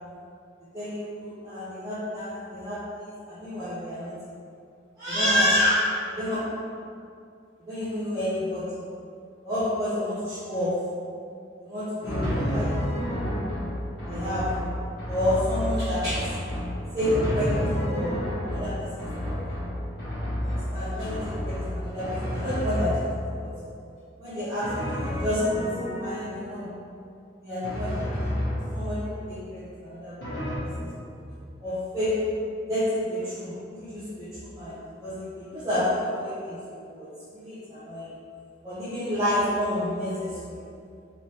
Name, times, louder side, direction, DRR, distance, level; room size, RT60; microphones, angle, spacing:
voice 1, 0.7-4.1 5.0-5.8 6.1-6.4 7.7-8.7 9.4-10.7 11.6-12.7 14.1-14.5 15.1-16.2 16.9-18.2 18.4-19.4 20.4-23.0 23.4-23.5 24.2-25.7 26.0-26.7 27.4-28.3 28.7-30.3 30.6-31.1 31.6-32.2 32.7-34.8 35.0-37.1 37.3-38.1 38.6-40.6, left 1 dB, 20° right, -13 dB, 0.7 m, -29 dB
Drum, 12.0-23.4 24.6-26.6 27.6-29.1 30.2-30.6, equal, 55° left, 1.1 m, -30 dB
3.2 x 3.1 x 2.8 m, 2.4 s
head